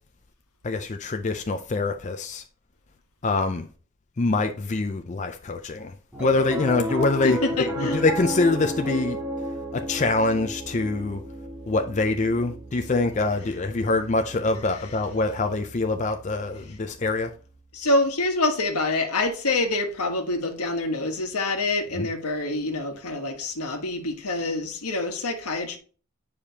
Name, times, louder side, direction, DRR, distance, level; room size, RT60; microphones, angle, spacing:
voice 1, 0.6-2.4 3.2-3.7 4.2-5.9 6.2-9.2 9.7-11.2 11.7-17.3 22.0-22.1, left 3 dB, 30° left, 0.4 m, -25 dB
Piano, 6.1-16.6, equal, 5° right, 2.1 m, -33 dB
voice 2, 7.2-8.0 14.7-14.8 16.6-16.8 17.7-25.8, left 2 dB, 85° left, 1.3 m, -26 dB
9.0 x 5.0 x 2.8 m
head